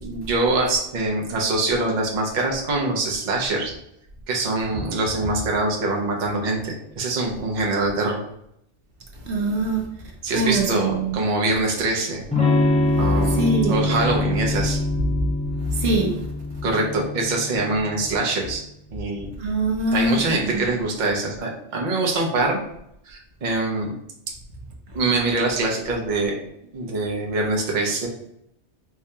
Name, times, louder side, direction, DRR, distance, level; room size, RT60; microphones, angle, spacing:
voice 1, 0.0-3.7 4.3-8.2 10.2-12.2 12.9-14.8 16.6-18.6 18.9-19.3 19.9-22.6 23.1-23.9 24.9-26.4 26.7-28.1, right 2 dB, 45° right, -1 dB, 0.7 m, -24 dB
voice 2, 9.3-9.9 10.3-11.2 13.4-13.7 15.8-16.1 19.4-20.2 20.5-20.6, right 2 dB, 70° right, 1 dB, 1.0 m, -22 dB
Electric guitar / Strum, 12.3-18.0, left 2 dB, 10° left, 0.4 m, -24 dB
4.6 x 2.7 x 2.2 m, 0.75 s
omnidirectional pair, 1.2 m